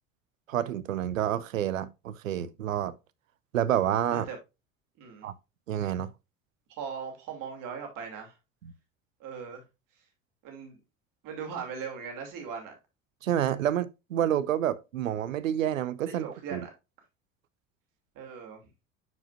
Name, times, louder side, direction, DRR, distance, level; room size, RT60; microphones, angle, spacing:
voice 1, 0.5-2.9 3.5-4.3 5.2-5.3 5.7-6.1 8.6-8.7 13.2-16.6, right 11 dB, 85° right, 0.6 m, -29 dB
voice 2, 5.0-5.3 6.7-8.3 9.2-9.6 10.4-10.8 11.2-12.7 16.1-16.7 18.1-18.6, right 6 dB, 55° right, 2.9 m, -39 dB
9.3 x 4.9 x 2.5 m
hypercardioid pair, 70°, 39 cm